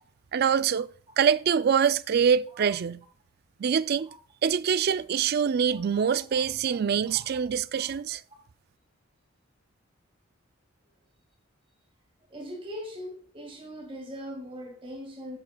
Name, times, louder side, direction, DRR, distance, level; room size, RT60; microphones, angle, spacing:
voice 1, 0.3-0.9 1.2-3.0 3.6-4.1 4.4-8.2, right 7 dB, 50° right, 0.3 m, -24 dB
voice 2, 5.7-7.4 7.7-7.9 12.3-15.4, equal, 25° right, 2.1 m, -42 dB
12.5 x 8.8 x 2.3 m
head